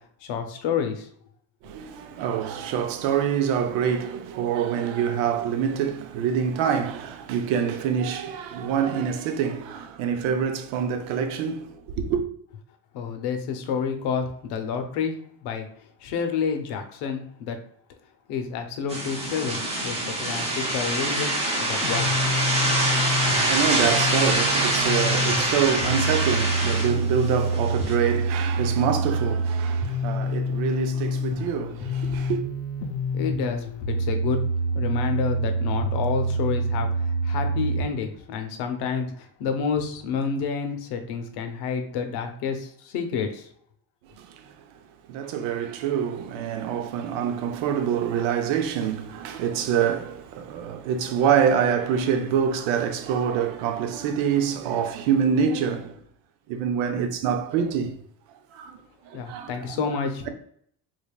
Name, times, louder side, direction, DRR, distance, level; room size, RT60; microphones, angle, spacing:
voice 1, 0.2-1.1 12.9-15.1 15.4-15.7 16.0-17.6 18.3-21.3 21.6-22.1 33.1-34.4 34.7-43.5 59.1-60.3, left 6 dB, 60° left, 0.8 m, -29 dB
voice 2, 1.6-12.2 23.2-32.4 44.2-44.6 45.1-56.0 56.5-57.9 58.5-58.8 59.0-59.8, right 7 dB, 75° right, 0.7 m, -26 dB
sound 1, 18.9-27.9, right 1 dB, 15° right, 0.6 m, -25 dB
sound 2, 21.8-37.8, right 1 dB, 35° left, 0.4 m, -27 dB
3.9 x 3.4 x 2.3 m
cardioid pair, 170°, 46 cm